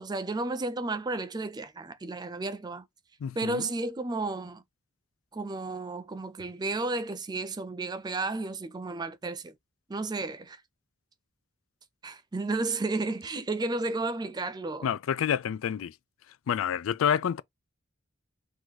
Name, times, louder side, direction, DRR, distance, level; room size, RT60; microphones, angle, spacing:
voice 1, 0.0-2.9 3.4-4.6 5.3-9.6 9.9-10.6 12.0-14.9, right 3 dB, 20° right, 0.4 m, -32 dB
voice 2, 3.2-3.7 14.8-16.0 16.3-17.4, left 8 dB, 75° left, 0.3 m, -28 dB
3.9 x 2.6 x 4.6 m
head